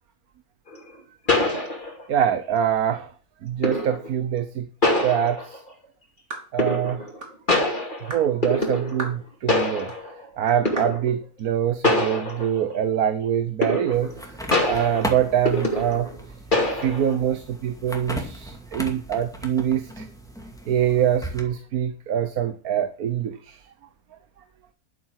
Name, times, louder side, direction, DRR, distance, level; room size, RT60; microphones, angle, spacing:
sound 1, 0.7-0.8 1.3-2.2 3.6-4.1 4.8-5.7 6.6-7.2 7.5-9.2 9.5-10.2 10.7-11.1 11.8-12.8 13.6-14.2 14.5-16.2 16.5-17.2, left 1 dB, 35° left, 2.8 m, -24 dB
voice 1, 2.1-3.1 3.4-4.7 5.0-5.6 6.5-7.1 8.0-9.9 10.4-14.4 14.7-16.1 16.8-20.1 20.7-23.7, right 9 dB, 80° right, 9 dB, 1.5 m, -24 dB
sound 2, 6.3-6.5 7.2-7.4 8.1-8.3 9.0-9.2 9.9-10.0 10.8-11.0, right 2 dB, 50° right, 3.2 m, -35 dB
sound 3, 13.9-21.4, equal, ahead, 2.3 m, -37 dB
11.5 x 8.7 x 6.4 m, 0.40 s
omnidirectional pair, 1.6 m